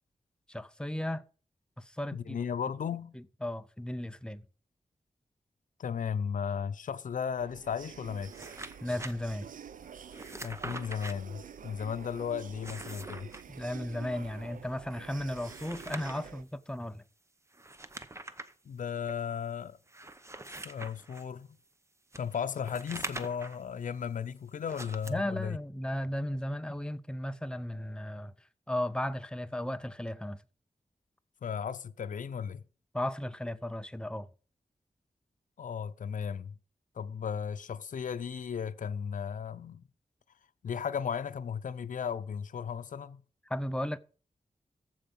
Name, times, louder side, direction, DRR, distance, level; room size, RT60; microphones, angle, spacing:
voice 1, 0.5-1.2 1.8-2.4 3.1-4.4 8.8-9.5 13.5-17.0 25.1-28.3 28.7-30.4 32.9-34.3 43.5-44.0, left 1 dB, 5° left, 0.6 m, -35 dB
voice 2, 2.1-3.1 5.8-8.3 10.4-13.3 18.6-19.8 20.6-21.6 22.2-25.6 31.4-32.6 35.6-36.6 37.0-39.9 40.6-43.2, left 7 dB, 80° left, 0.6 m, -35 dB
sound 1, 7.4-16.4, right 7 dB, 85° right, 0.6 m, -48 dB
sound 2, 8.1-9.1 10.1-11.1 12.5-13.4 15.2-16.3 17.5-18.5 19.1-19.2 19.9-21.3 22.1-23.6 24.6-25.1, right 2 dB, 20° right, 0.8 m, -43 dB
14.5 x 5.1 x 5.4 m
wide cardioid pair, 115°, 13 cm